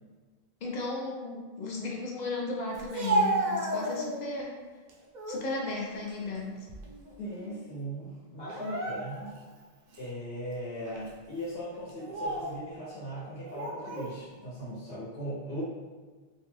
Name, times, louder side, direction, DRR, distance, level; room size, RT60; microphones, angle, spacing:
voice 1, 0.6-4.6 5.3-6.5, left 2 dB, 55° left, -2 dB, 0.5 m, -35 dB
Speech, 2.7-4.4 4.9-5.5 5.9-7.1 7.4-7.6 8.4-9.4 9.9-10.1 10.9-11.1 11.9-12.6 13.4-14.1, right 1 dB, 55° right, 0.6 m, -32 dB
voice 2, 7.2-9.3 10.0-15.6, equal, 75° left, -7 dB, 1.0 m, -39 dB
2.6 x 2.1 x 3.1 m, 1.4 s
omnidirectional pair, 1.0 m